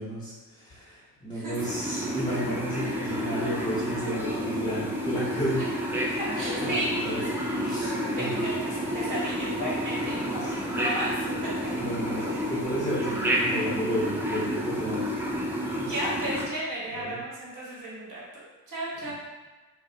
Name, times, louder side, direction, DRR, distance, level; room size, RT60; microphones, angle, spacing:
voice 1, 0.0-5.6 6.6-7.3 7.6-8.5 10.4-10.5 11.5-15.3 15.8-15.9 16.9-17.2, equal, 10° left, -10 dB, 0.8 m, -33 dB
sound 1, 1.6-16.5, equal, 5° right, 0.4 m, -30 dB
sound 2, 2.2-12.7, left 3 dB, 45° left, 0.6 m, -41 dB
voice 2, 6.4-6.9 7.8-10.4 10.7-11.3 15.8-18.2 18.7-19.1, right 1 dB, 50° right, -6 dB, 1.2 m, -34 dB
2.4 x 2.1 x 2.7 m, 1.2 s
supercardioid pair, 50°, 40 cm